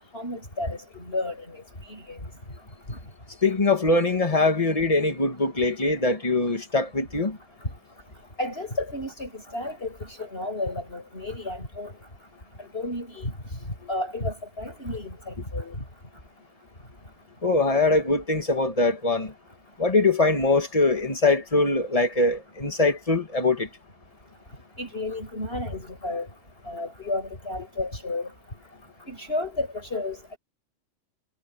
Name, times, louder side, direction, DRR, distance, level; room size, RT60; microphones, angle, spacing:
voice 1, 0.1-1.6 1.9-2.2 2.9-3.0 8.4-11.9 12.6-13.3 13.9-15.8 24.8-26.3 26.7-28.3 29.1-30.4, left 2 dB, 50° left, 6.6 m, -32 dB
voice 2, 3.4-7.4 17.4-19.3 19.8-23.7, left 3 dB, 30° left, 2.2 m, -22 dB
omnidirectional pair, 1.3 m